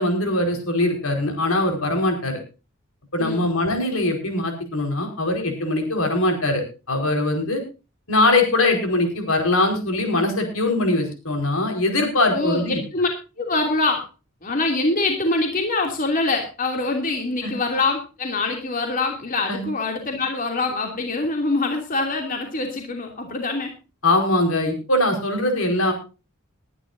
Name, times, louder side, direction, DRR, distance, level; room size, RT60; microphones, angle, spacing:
voice 1, 0.0-2.4 3.1-7.6 8.1-12.8 17.4-17.5 19.5-19.7 24.0-25.9, left 2 dB, 80° left, 4 dB, 5.0 m, -22 dB
voice 2, 3.2-3.5 12.3-13.1 13.4-14.1 14.4-23.7, left 3 dB, 40° left, 2 dB, 2.8 m, -24 dB
21.5 x 11.0 x 2.7 m, 0.31 s
head